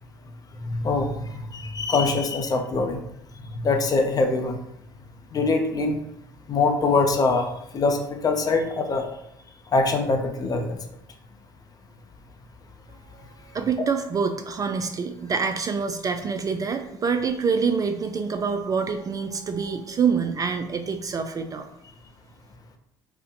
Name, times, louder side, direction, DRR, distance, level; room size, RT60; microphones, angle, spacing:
voice 1, 0.6-3.0 3.6-4.6 5.3-6.0 6.5-7.5 7.7-9.0 9.7-10.8, left 3 dB, 35° left, 4 dB, 0.6 m, -23 dB
voice 2, 13.5-21.7, right 5 dB, 30° right, 7 dB, 0.3 m, -26 dB
2.6 x 2.1 x 3.8 m, 0.76 s
hypercardioid pair, 65°, 12 cm